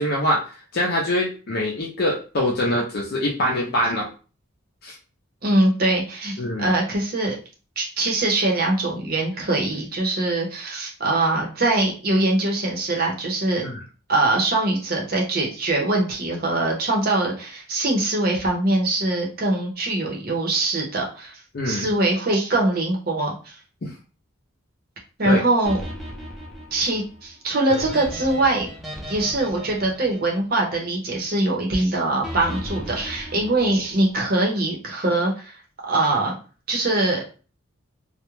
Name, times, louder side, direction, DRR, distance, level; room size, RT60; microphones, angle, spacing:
voice 1, 0.0-4.1 4.8-5.0 6.4-6.7 13.6-13.8 21.5-21.9 23.8-23.9 25.2-25.4, left 1 dB, 50° left, -2 dB, 0.5 m, -24 dB
voice 2, 5.4-7.4 7.8-13.6 14.1-21.4 21.7-23.6 25.2-25.8 26.7-28.7 29.1-35.6 35.9-36.4 36.7-37.4, right 2 dB, 45° right, -1 dB, 0.7 m, -22 dB
sound 1, 25.7-30.9 32.2-34.2, equal, ahead, 0.6 m, -36 dB
2.3 x 2.1 x 3.0 m, 0.36 s
head